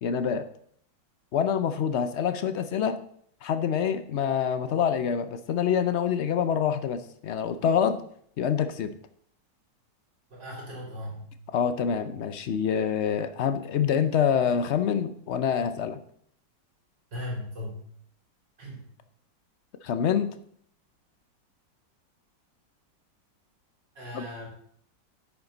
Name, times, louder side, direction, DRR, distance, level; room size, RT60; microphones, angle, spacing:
voice 1, 0.0-0.4 1.3-3.0 3.4-8.0 8.4-8.9 11.5-16.0 19.8-20.3 24.1-24.2, left 7 dB, 70° left, 10 dB, 0.6 m, -26 dB
voice 2, 10.3-11.3 17.1-17.8 18.6-18.9 23.9-24.5, left 1 dB, 85° right, -3 dB, 4.4 m, -37 dB
11.0 x 8.6 x 3.9 m, 0.64 s
omnidirectional pair, 1.9 m